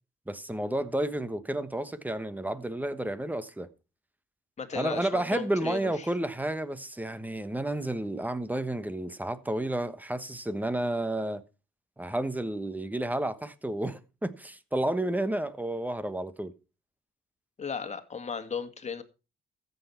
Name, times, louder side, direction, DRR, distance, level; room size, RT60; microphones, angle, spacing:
voice 1, 0.3-3.7 4.7-11.4 12.0-16.5, right 1 dB, 10° right, 1.2 m, -31 dB
voice 2, 4.6-6.1 17.6-19.0, left 6 dB, 35° left, 2.0 m, -36 dB
14.0 x 8.2 x 4.4 m
cardioid pair, 90°, 20 cm